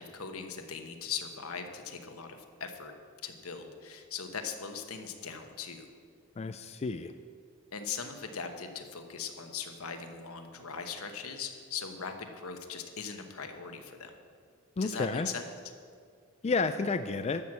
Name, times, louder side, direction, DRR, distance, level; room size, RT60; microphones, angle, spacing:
voice 1, 0.0-2.9 3.2-5.8 7.7-14.1 14.8-15.4, left 6 dB, 80° left, 6 dB, 1.1 m, -40 dB
voice 2, 6.4-7.1 14.8-15.3 16.4-17.4, left 4 dB, 30° left, 9 dB, 0.3 m, -31 dB
12.5 x 6.2 x 7.5 m, 2.1 s
head